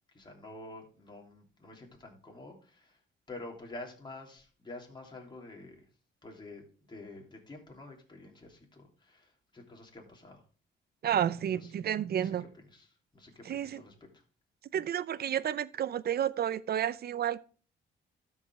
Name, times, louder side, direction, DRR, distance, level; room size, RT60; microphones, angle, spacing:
voice 1, 0.1-3.0 3.3-5.8 6.2-10.4 11.5-11.7 12.2-12.9 13.1-14.2, left 2 dB, 25° left, 3.2 m, -48 dB
voice 2, 11.0-12.4 13.4-13.8 14.7-17.4, right 10 dB, 50° right, 0.6 m, -31 dB
12.5 x 5.6 x 3.6 m
cardioid pair, 90°, 20 cm